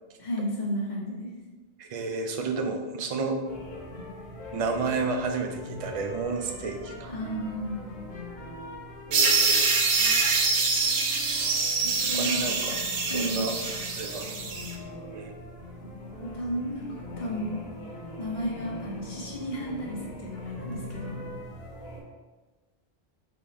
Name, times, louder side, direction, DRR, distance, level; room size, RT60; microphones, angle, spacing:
voice 1, 0.2-1.3 7.1-7.9 11.8-12.6 13.1-13.4 16.2-17.6 18.2-21.2, equal, 45° left, -4 dB, 1.1 m, -33 dB
voice 2, 1.8-3.4 4.5-7.1 9.1-9.8 12.1-12.8 13.1-13.5 13.9-14.4 15.1-15.3, right 4 dB, 50° right, 5 dB, 0.4 m, -31 dB
sound 1, 3.4-22.0, left 1 dB, 75° left, 1.1 m, -42 dB
sound 2, 9.1-14.7, right 4 dB, 85° right, 0.9 m, -25 dB
3.6 x 3.3 x 4.0 m, 1.3 s
omnidirectional pair, 1.1 m